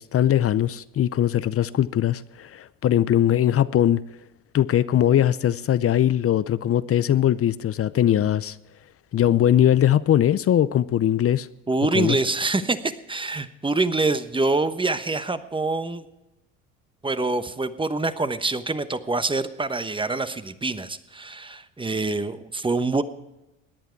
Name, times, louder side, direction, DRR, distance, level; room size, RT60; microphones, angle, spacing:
voice 1, 0.0-4.0 4.5-8.6 9.1-11.5 11.9-12.2, left 11 dB, 40° left, 0.6 m, -20 dB
voice 2, 11.7-16.0 17.0-23.0, right 3 dB, 15° right, 1.0 m, -25 dB
17.5 x 10.5 x 4.6 m
supercardioid pair, 75°, 37 cm